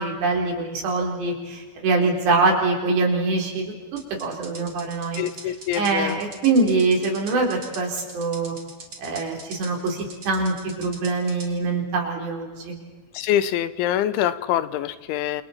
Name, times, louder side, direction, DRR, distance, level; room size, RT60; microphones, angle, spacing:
voice 1, 0.0-3.6 3.9-5.2 5.8-8.5 9.0-10.0 10.3-12.8, right 3 dB, 65° right, 1 dB, 5.9 m, -24 dB
sound 1, 4.0-11.5, right 3 dB, 30° right, 2.8 m, -42 dB
voice 2, 5.2-6.2 13.1-15.4, left 11 dB, 85° left, 14 dB, 3.2 m, -25 dB
28.5 x 28.0 x 4.4 m, 1.4 s
omnidirectional pair, 5.4 m